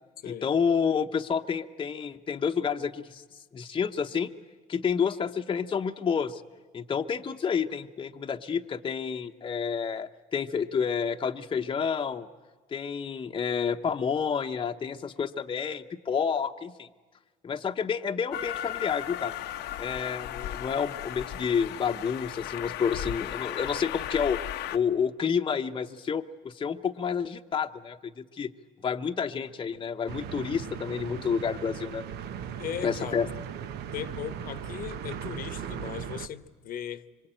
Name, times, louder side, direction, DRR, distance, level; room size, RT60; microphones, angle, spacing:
voice 1, 0.3-3.2 3.5-4.3 4.7-6.4 6.7-12.3 12.7-16.9 17.4-19.3 19.8-24.4 24.7-28.5 28.8-32.0 32.8-33.3, left 6 dB, 30° left, 0.8 m, -29 dB
Train, 18.3-24.8, left 12 dB, 90° left, 0.9 m, -36 dB
sound 1, 30.1-36.3, right 9 dB, 75° right, 1.0 m, -38 dB
voice 2, 32.6-33.2 33.9-37.3, left 10 dB, 55° left, 1.0 m, -38 dB
25.5 x 23.5 x 8.9 m
cardioid pair, 110°, 17 cm